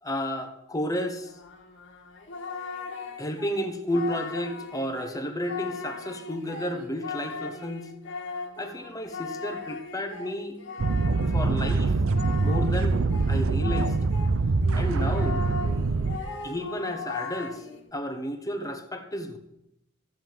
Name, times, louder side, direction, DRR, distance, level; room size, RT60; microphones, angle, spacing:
voice 1, 0.0-1.3 3.2-7.9 8.6-10.6 11.3-12.0 12.4-13.0 13.3-13.9 14.7-15.5 16.4-17.6 17.9-19.4, left 1 dB, 15° left, 6 dB, 1.0 m, -32 dB
Singing, 1.2-14.3 14.6-17.9, left 4 dB, 65° left, 1.6 m, -38 dB
sound 1, 10.8-16.2, right 3 dB, 80° right, 0.6 m, -24 dB
14.0 x 5.4 x 7.8 m, 0.86 s
head